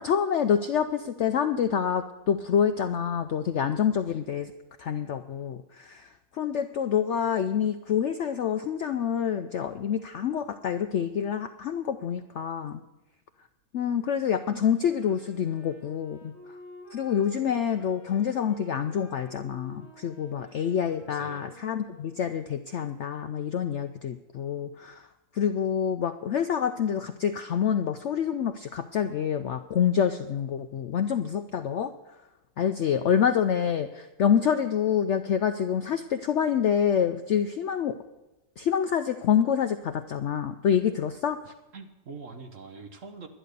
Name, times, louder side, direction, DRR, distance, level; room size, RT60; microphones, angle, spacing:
voice 1, 0.0-4.5 4.8-12.8 13.7-16.6 16.9-25.1 25.3-31.9 32.6-37.9 38.6-41.4, left 8 dB, 85° left, 9 dB, 0.6 m, -27 dB
Wind instrument woodwind instrument, 14.3-22.6, equal, 75° right, 4.9 m, -50 dB
voice 2, 21.1-21.4 41.7-43.3, right 4 dB, 50° right, 6 dB, 1.3 m, -43 dB
11.0 x 11.0 x 6.6 m, 1.0 s
omnidirectional pair, 1.8 m